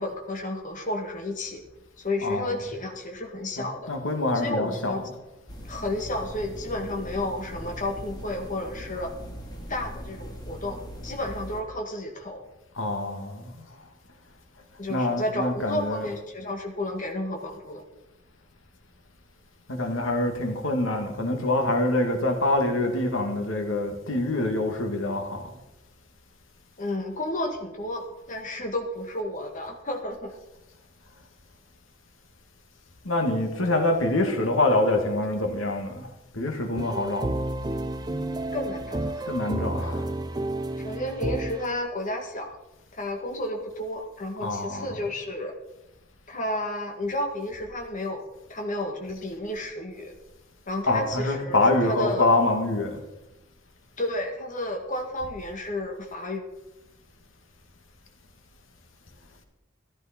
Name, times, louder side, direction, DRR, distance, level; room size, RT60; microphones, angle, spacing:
voice 1, 0.0-1.6 2.0-3.9 4.4-5.0 5.6-9.1 9.7-12.5 14.8-17.8 26.8-30.3 38.5-39.3 40.8-42.6 42.9-45.5 46.3-48.2 48.5-50.1 50.7-52.3 54.0-56.4, left 1 dB, 40° left, 2.0 m, -32 dB
voice 2, 2.2-2.6 3.6-5.2 12.8-13.5 14.9-16.1 19.7-25.4 33.0-36.1 36.3-37.5 39.3-40.1 44.4-45.0 50.9-53.0, left 2 dB, 90° left, 2.3 m, -25 dB
sound 1, 5.5-11.6, equal, 20° left, 2.4 m, -40 dB
sound 2, 36.8-41.7, right 1 dB, 20° right, 0.6 m, -31 dB
14.5 x 13.5 x 4.4 m
head